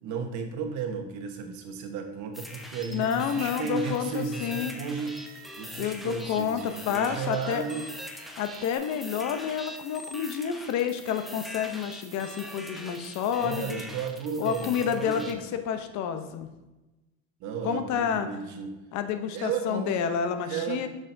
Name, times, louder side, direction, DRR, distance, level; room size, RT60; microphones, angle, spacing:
voice 1, 0.0-5.2 5.6-7.9 13.3-15.4 17.4-18.8 19.3-20.0 20.4-20.9, right 6 dB, 55° right, 5 dB, 1.2 m, -34 dB
sound 1, 2.3-15.3, equal, ahead, 0.6 m, -43 dB
voice 2, 2.9-4.8 5.8-7.6 8.4-13.8 14.4-15.4 15.7-16.5 17.6-18.3 18.9-20.9, left 8 dB, 55° left, 8 dB, 0.8 m, -29 dB
Bowed string instrument, 3.7-8.8, left 1 dB, 80° left, 1.7 m, -56 dB
6.6 x 6.1 x 2.6 m, 1.0 s
supercardioid pair, 100°, 34 cm